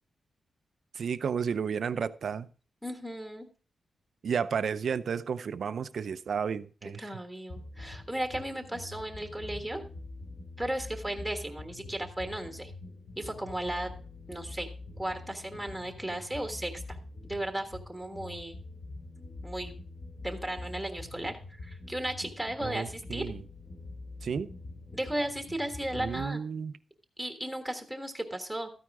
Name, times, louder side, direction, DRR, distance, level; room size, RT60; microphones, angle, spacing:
voice 1, 0.9-2.5 4.2-7.0 22.6-23.4 24.2-24.5 25.9-26.7, right 6 dB, 55° right, 0.6 m, -32 dB
voice 2, 2.8-3.5 6.8-9.8 10.6-12.7 13.1-13.9 14.3-14.7 15.0-17.0 17.2-18.6 19.4-19.7 20.2-23.3 24.9-26.4 27.2-28.7, right 1 dB, ahead, 1.4 m, -35 dB
sound 1, 7.5-26.3, left 2 dB, 40° left, 2.2 m, -45 dB
13.5 x 9.5 x 3.6 m
wide cardioid pair, 170°, 0 cm